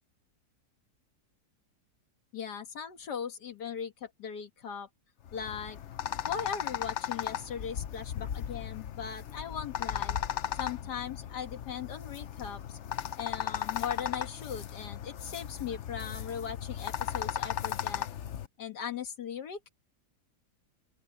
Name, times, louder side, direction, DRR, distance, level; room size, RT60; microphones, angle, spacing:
voice 1, 2.3-4.9 5.3-5.8 6.2-10.2 10.5-12.8 13.2-18.1 18.6-19.7, left 7 dB, 80° left, 2.0 m, -39 dB
sound 1, 5.3-18.5, left 10 dB, 55° left, 0.9 m, -36 dB
open air
omnidirectional pair, 1.8 m